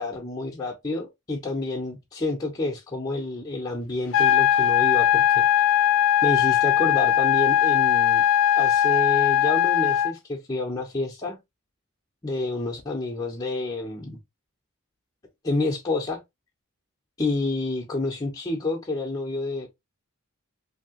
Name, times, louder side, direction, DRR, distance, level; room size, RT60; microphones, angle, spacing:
voice 1, 0.0-5.4 6.2-8.2 8.6-11.4 12.2-14.2 15.4-16.2 17.2-19.7, left 2 dB, 20° left, 0.7 m, -29 dB
sound 1, 4.1-10.1, left 10 dB, 65° left, 0.4 m, -20 dB
2.9 x 2.7 x 2.9 m
head